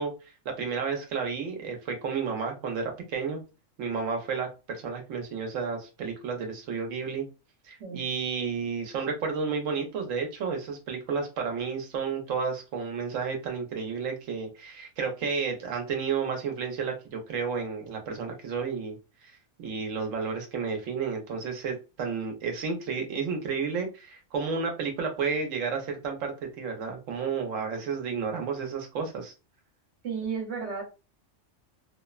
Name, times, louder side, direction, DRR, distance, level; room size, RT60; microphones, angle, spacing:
voice 1, 0.0-3.4 3.8-7.3 7.6-19.0 19.2-19.3 19.6-29.3, right 5 dB, 90° right, 1.0 m, -32 dB
voice 2, 30.0-30.8, right 6 dB, 65° right, 1.1 m, -33 dB
2.7 x 2.0 x 2.3 m
omnidirectional pair, 1.3 m